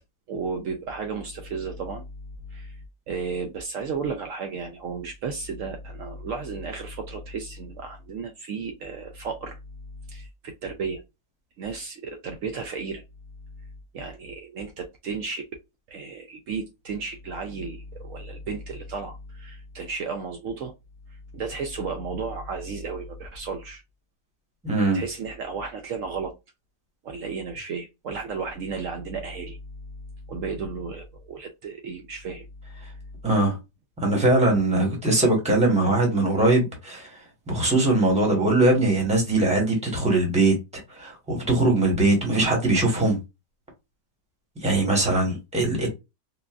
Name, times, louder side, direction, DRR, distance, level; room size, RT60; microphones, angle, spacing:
voice 1, 0.3-2.1 2.5-2.8 3.1-9.6 10.1-11.0 11.6-13.0 13.9-15.4 15.9-20.7 21.3-23.8 24.9-26.3 27.0-29.6 30.3-32.5 45.0-45.2, right 4 dB, 90° right, 0.7 m, -33 dB
voice 2, 24.6-25.0 33.2-33.6 34.0-37.1 37.5-43.2 44.6-45.9, right 2 dB, 5° right, 0.9 m, -21 dB
3.9 x 2.3 x 2.3 m
omnidirectional pair, 1.9 m